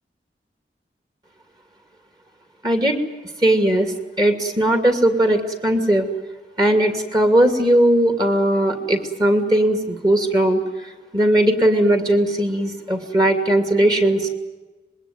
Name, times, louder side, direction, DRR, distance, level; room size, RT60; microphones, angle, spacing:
voice 1, 2.6-3.0 3.4-3.9 4.2-6.1 6.6-10.6 11.1-14.3, right 1 dB, 25° right, 6 dB, 2.5 m, -18 dB
26.0 x 21.0 x 9.3 m, 1.2 s
head